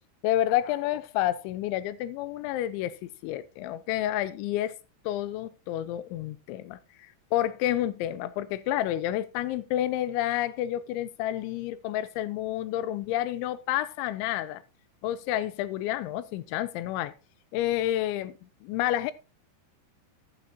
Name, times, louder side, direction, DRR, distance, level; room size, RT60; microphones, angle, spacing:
voice 1, 0.2-4.7 5.1-14.6 15.0-17.1 17.5-19.1, left 13 dB, 85° left, 3.0 m, -29 dB
12.0 x 8.6 x 2.8 m
omnidirectional pair, 5.4 m